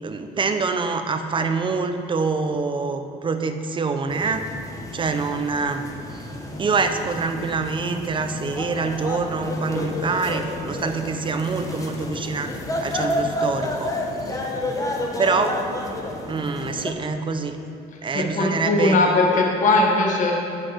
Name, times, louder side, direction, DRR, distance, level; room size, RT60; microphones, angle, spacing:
voice 1, 0.0-4.5 4.9-6.3 6.6-14.4 15.2-15.6 16.3-17.6 18.0-19.0, right 4 dB, 30° right, 7 dB, 0.7 m, -25 dB
sound 1, 4.1-16.9, left 1 dB, 20° left, 1.1 m, -30 dB
voice 2, 18.1-20.3, left 2 dB, 50° left, 0 dB, 1.3 m, -19 dB
7.7 x 6.4 x 6.3 m, 2.8 s
cardioid pair, 110°, 17 cm